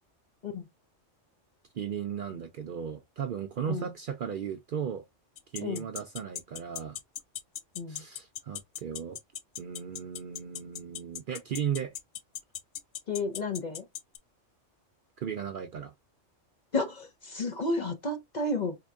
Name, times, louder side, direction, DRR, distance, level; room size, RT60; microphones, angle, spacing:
voice 1, 1.7-5.0 5.5-7.0 7.9-9.2 9.6-11.9 15.2-15.9, right 8 dB, 60° right, 0.5 m, -36 dB
sound 1, 5.4-14.2, left 10 dB, 70° left, 0.9 m, -37 dB
voice 2, 13.1-13.9 16.7-18.8, left 2 dB, 45° left, 0.6 m, -32 dB
4.4 x 2.8 x 2.3 m
omnidirectional pair, 1.2 m